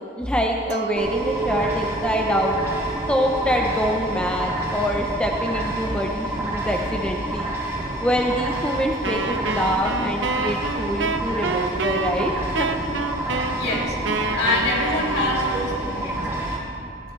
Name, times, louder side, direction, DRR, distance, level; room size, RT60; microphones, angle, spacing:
voice 1, 0.2-2.6 3.1-7.5 8.0-12.7, equal, 5° left, 0 dB, 0.7 m, -25 dB
Chink clink, 0.7-6.2, right 5 dB, 40° right, 0.4 m, -33 dB
sound 1, 1.0-16.6, right 1 dB, 15° right, 2.6 m, -28 dB
Wind instrument woodwind instrument, 9.0-15.9, right 4 dB, 90° right, 0.7 m, -28 dB
voice 2, 13.5-16.2, left 2 dB, 60° left, -4 dB, 3.1 m, -25 dB
20.0 x 15.5 x 3.2 m, 2.6 s
head